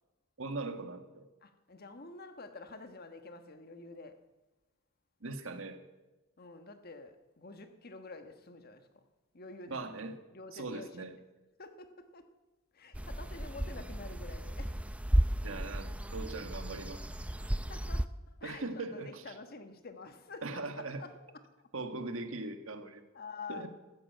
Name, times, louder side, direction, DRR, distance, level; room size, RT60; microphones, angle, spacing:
voice 1, 0.4-1.2 5.2-5.8 9.7-10.1 10.5-11.2 15.4-17.0 18.4-19.2 20.4-21.0 21.7-23.0 23.5-23.7, right 3 dB, 70° right, 7 dB, 1.7 m, -40 dB
voice 2, 1.4-4.2 6.4-9.0 9.3-10.0 10.3-11.1 11.6-12.3 12.7-14.8 17.5-21.1 23.1-23.7, left 3 dB, 45° left, 8 dB, 1.3 m, -48 dB
sound 1, 12.9-18.1, equal, 5° right, 0.4 m, -33 dB
14.0 x 13.0 x 7.9 m, 1.1 s
head